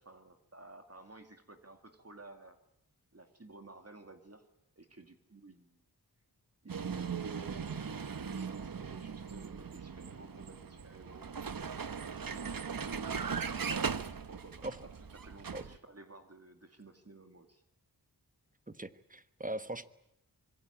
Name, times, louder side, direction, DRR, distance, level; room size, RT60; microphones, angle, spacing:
voice 1, 0.0-2.6 3.1-4.5 4.8-5.8 6.6-11.5 12.1-13.4 14.0-17.6, right 2 dB, 40° right, 6 dB, 2.5 m, -54 dB
Vehicle, 6.7-15.8, right 6 dB, 60° right, 1.0 m, -39 dB
voice 2, 18.7-19.9, right 1 dB, 20° right, 12 dB, 1.3 m, -40 dB
25.0 x 22.0 x 8.7 m, 0.79 s
wide cardioid pair, 65°, 39 cm